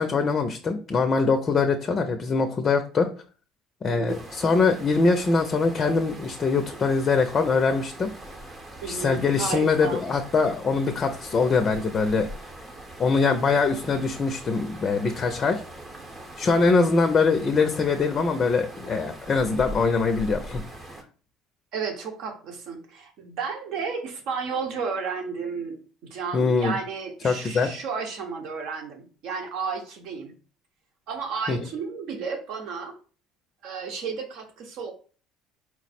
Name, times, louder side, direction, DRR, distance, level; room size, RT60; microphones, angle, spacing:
voice 1, 0.0-3.1 3.8-8.1 8.9-12.3 13.0-15.6 16.4-20.6 26.3-26.7 27.2-27.7 31.5-31.6, left 4 dB, 35° left, 7 dB, 0.4 m, -23 dB
voice 2, 3.9-4.2 8.8-9.1 9.4-10.0 16.6-16.9 21.7-30.3 31.1-32.9 33.6-34.9, right 5 dB, 70° right, 4 dB, 0.9 m, -33 dB
sound 1, 4.1-21.0, right 1 dB, 25° right, 0.8 m, -42 dB
4.5 x 2.0 x 4.1 m, 0.39 s
cardioid pair, 115°, 0 cm